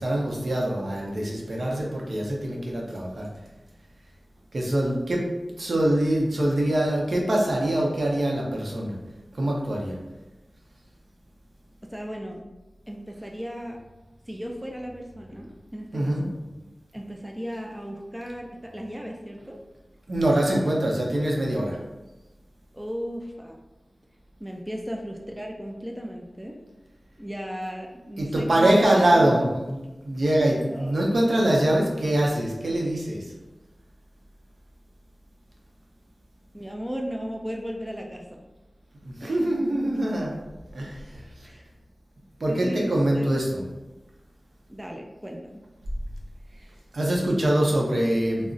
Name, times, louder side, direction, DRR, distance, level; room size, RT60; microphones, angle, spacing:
voice 1, 0.0-3.3 4.5-5.3 5.6-9.0 9.3-10.0 15.9-16.3 20.1-21.8 28.2-29.8 30.0-33.3 39.0-40.3 40.7-41.3 42.4-43.6 46.9-48.5, right 1 dB, 70° right, -2 dB, 0.6 m, -24 dB
voice 2, 11.8-12.4 12.9-13.8 14.3-16.3 16.9-19.6 22.7-23.6 24.4-26.6 27.2-28.8 29.1-29.5 30.7-31.1 36.5-38.5 39.2-39.4 41.4-41.7 42.5-43.4 44.7-45.6, equal, 10° right, 1 dB, 0.3 m, -36 dB
2.4 x 2.0 x 3.8 m, 1.1 s
wide cardioid pair, 75°, 0 cm